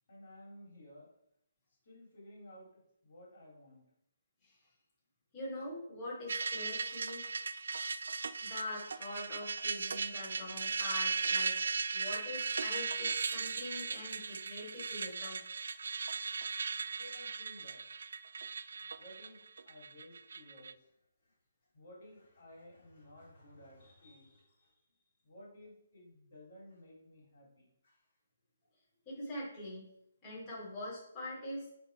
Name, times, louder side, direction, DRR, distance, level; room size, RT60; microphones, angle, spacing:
voice 1, 0.1-1.1 1.8-3.8 17.0-17.8 19.0-19.4 19.6-21.0 21.2-21.4 21.7-28.1, left 1 dB, 50° left, -3 dB, 3.1 m, -56 dB
voice 2, 5.3-7.2 8.4-15.4 29.0-29.8 30.2-31.7, left 1 dB, 15° left, -9 dB, 3.3 m, -43 dB
sound 1, 6.3-20.7, right 5 dB, 65° right, 0.4 m, -37 dB
10.5 x 3.9 x 4.7 m, 0.78 s
hypercardioid pair, 170°, 0 cm